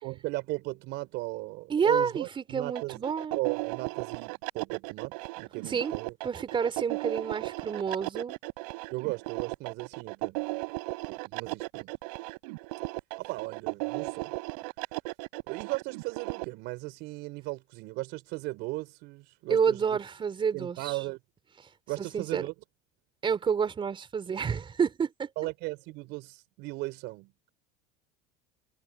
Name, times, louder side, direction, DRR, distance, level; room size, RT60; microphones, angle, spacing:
voice 1, 0.0-3.0 3.4-6.1 8.9-10.4 11.1-11.9 13.2-14.3 15.5-20.0 20.5-21.2 21.9-22.5 25.4-27.5, right 22 dB, 65° right, 5.4 m, -36 dB
voice 2, 1.7-3.4 5.7-5.9 6.2-8.4 19.5-21.0 22.0-22.5 23.2-25.3, right 6 dB, 25° right, 4.1 m, -29 dB
sound 1, 2.7-16.4, right 27 dB, 80° right, 5.4 m, -36 dB
supercardioid pair, 125°, 20 cm